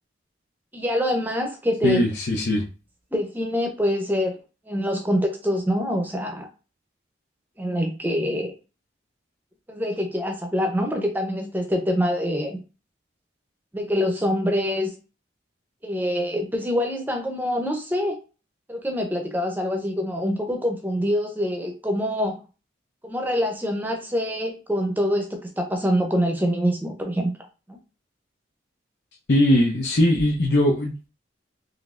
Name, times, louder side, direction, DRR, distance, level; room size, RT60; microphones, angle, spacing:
voice 1, 0.7-2.0 3.1-4.3 4.7-6.5 7.6-8.5 9.7-12.6 13.7-14.9 15.8-18.2 18.7-22.3 23.0-27.3 27.7-27.8, equal, 10° right, 3 dB, 0.6 m, -25 dB
voice 2, 1.8-2.6 29.3-31.1, left 1 dB, 60° left, -1 dB, 0.6 m, -20 dB
3.9 x 3.2 x 2.4 m, 0.32 s
head